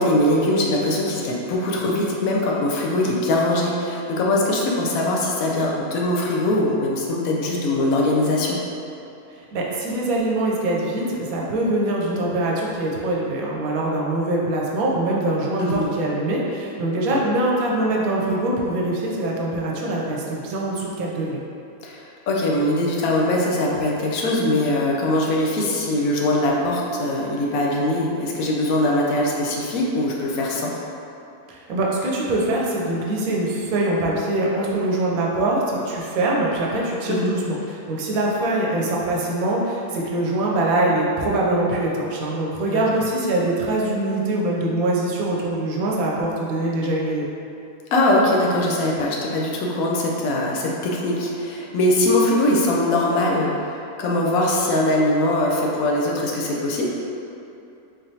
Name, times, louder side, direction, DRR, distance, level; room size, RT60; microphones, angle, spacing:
voice 1, 0.0-8.6 15.6-15.9 17.1-17.2 21.8-30.7 37.1-37.3 42.7-42.8 47.9-56.8, left 1 dB, 75° left, -2 dB, 1.0 m, -21 dB
voice 2, 9.5-21.4 31.5-47.3, right 1 dB, 70° right, -3 dB, 1.0 m, -23 dB
4.0 x 3.2 x 2.7 m, 2.7 s
omnidirectional pair, 1.6 m